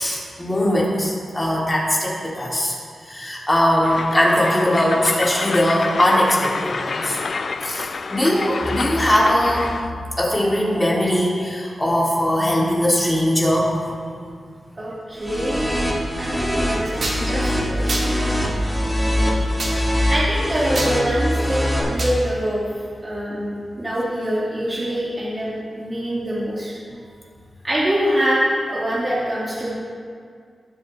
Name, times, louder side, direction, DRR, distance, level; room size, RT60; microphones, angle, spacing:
voice 1, 0.0-2.7 3.1-7.2 7.6-9.8 10.2-13.7, equal, 15° left, -5 dB, 2.8 m, -20 dB
Train, 3.8-9.9, left 4 dB, 55° left, 0.4 m, -28 dB
voice 2, 14.8-18.2 20.1-22.6 23.0-26.7 27.6-29.7, equal, 30° right, -8 dB, 2.2 m, -24 dB
sound 1, 15.2-21.8, equal, 5° right, 2.4 m, -23 dB
sound 2, 17.0-17.2 17.9-18.1 19.6-19.8 20.7-20.9 22.0-22.2, right 2 dB, 60° right, 2.2 m, -26 dB
19.5 x 7.6 x 3.4 m, 2.2 s
wide cardioid pair, 105°, 0 cm